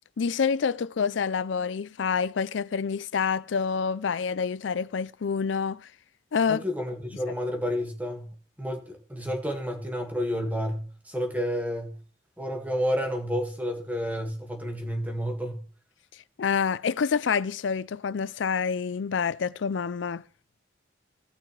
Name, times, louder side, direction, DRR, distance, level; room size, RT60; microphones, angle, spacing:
voice 1, 0.2-5.9 6.3-6.6 16.4-20.2, left 6 dB, 85° left, 0.5 m, -27 dB
voice 2, 6.5-8.3 8.6-12.0 12.4-15.6, equal, 10° right, 1.9 m, -30 dB
17.5 x 6.1 x 3.3 m
head